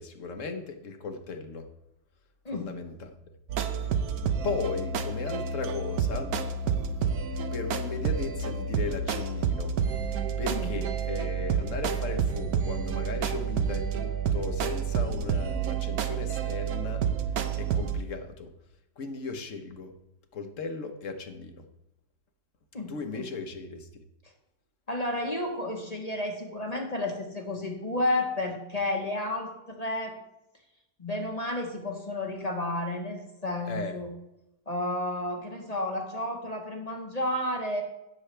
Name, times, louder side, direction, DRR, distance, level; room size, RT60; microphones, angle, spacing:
voice 1, 0.0-1.7 2.5-3.1 4.4-6.3 6.7-7.1 7.5-9.7 10.4-17.0 17.6-18.5 19.0-19.9 20.3-21.6 22.9-23.9 33.7-34.0, left 4 dB, 50° left, 7 dB, 1.3 m, -36 dB
sound 1, 3.5-18.0, right 6 dB, 65° right, 1.2 m, -29 dB
voice 2, 22.7-23.3 24.9-30.2 31.0-34.1 34.7-37.8, left 1 dB, 25° left, 2 dB, 1.2 m, -31 dB
16.0 x 7.1 x 3.3 m, 0.92 s
omnidirectional pair, 1.8 m